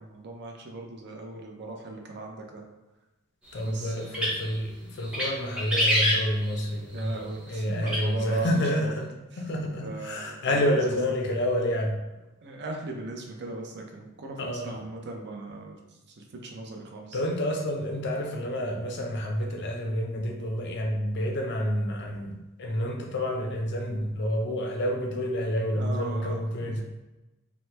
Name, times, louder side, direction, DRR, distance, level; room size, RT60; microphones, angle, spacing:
voice 1, 0.0-2.6 3.7-4.2 6.9-8.9 9.3-9.4 9.8-11.0 12.4-15.8 16.1-17.2 25.7-26.8, right 3 dB, 50° right, 1 dB, 0.5 m, -38 dB
voice 2, 3.5-9.1 9.4-11.9 14.4-14.8 17.1-26.8, equal, 50° left, 2 dB, 0.5 m, -29 dB
sound 1, 4.0-4.5 5.0-5.3 5.6-6.7 7.9-8.0, equal, 5° right, 0.6 m, -25 dB
2.9 x 2.1 x 3.2 m, 1.0 s
head